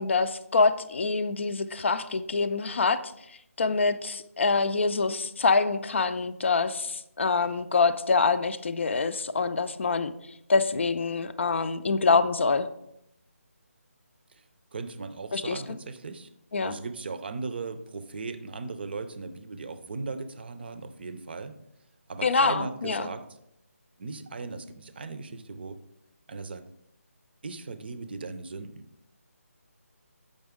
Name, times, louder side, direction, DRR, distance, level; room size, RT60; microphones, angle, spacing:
voice 1, 0.0-3.0 3.6-10.1 10.5-12.7 15.3-15.6 16.5-16.7 22.2-23.1, left 4 dB, 50° left, 12 dB, 0.5 m, -25 dB
voice 2, 14.7-16.3 16.6-21.6 22.1-23.3 24.0-25.8 26.3-26.6 27.4-28.8, right 4 dB, 40° right, 11 dB, 0.5 m, -37 dB
6.8 x 5.2 x 3.6 m, 0.78 s
figure-of-eight pair, 160°, 8 cm